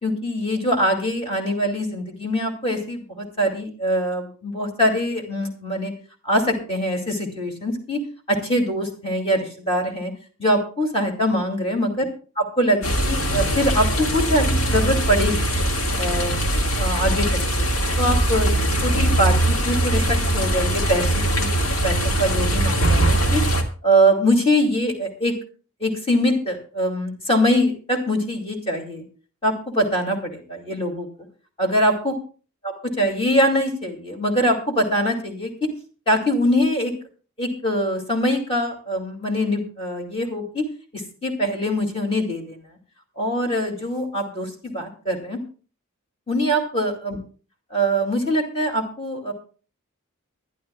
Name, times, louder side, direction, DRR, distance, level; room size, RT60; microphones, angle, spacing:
voice 1, 0.0-5.9 6.2-10.1 10.4-12.1 12.4-14.5 14.7-15.5 16.0-16.4 16.8-17.5 18.0-18.5 18.8-23.4 23.8-25.3 25.8-29.0 29.4-31.1 31.6-32.1 33.0-35.7 36.1-36.9 37.4-40.6 40.9-42.6 43.2-45.4 46.3-47.2 47.7-49.3, equal, 25° left, 2 dB, 2.4 m, -23 dB
sound 1, 12.8-23.6, right 1 dB, 70° left, 2.0 m, -21 dB
23.5 x 11.5 x 2.3 m, 0.38 s
head